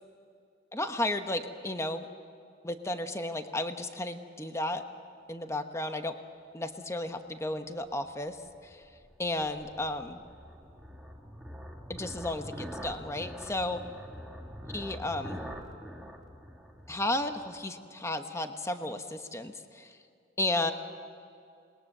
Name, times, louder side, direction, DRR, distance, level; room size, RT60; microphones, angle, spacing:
voice 1, 0.7-2.1 2.6-4.8 5.3-6.1 6.5-8.4 8.6-8.8 9.2-10.2 11.9-13.8 14.7-15.4 16.9-20.0 20.4-20.7, left 1 dB, 15° left, 7 dB, 1.1 m, -33 dB
sound 1, 8.1-17.6, equal, ahead, 1.8 m, -45 dB
28.0 x 21.0 x 6.7 m, 2.5 s
head